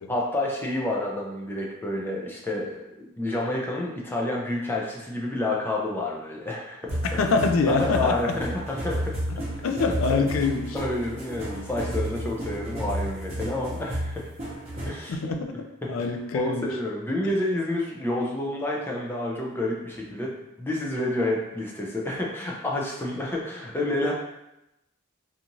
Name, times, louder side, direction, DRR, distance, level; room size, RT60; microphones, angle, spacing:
voice 1, 0.1-6.8 7.7-9.1 10.1-10.2 10.7-14.3 14.8-15.2 15.8-24.1, left 1 dB, 10° left, -2 dB, 0.4 m, -29 dB
sound 1, 6.9-15.1, equal, 30° right, 0.8 m, -32 dB
voice 2, 7.2-8.3 9.3-10.8 15.1-16.7, left 4 dB, 85° left, 5 dB, 0.4 m, -25 dB
2.6 x 2.4 x 2.9 m, 0.89 s
head